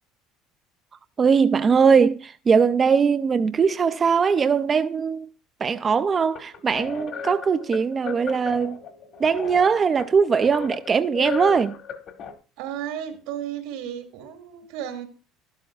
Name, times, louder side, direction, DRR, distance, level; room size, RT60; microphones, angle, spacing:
voice 1, 1.2-5.3 5.6-8.8 9.2-11.8, right 6 dB, 20° right, 0.4 m, -20 dB
sound 1, 6.1-12.3, left 7 dB, 40° left, 1.3 m, -36 dB
voice 2, 12.6-15.0, right 10 dB, 85° right, 2.3 m, -34 dB
12.0 x 12.0 x 2.3 m
cardioid pair, 175°, 0 cm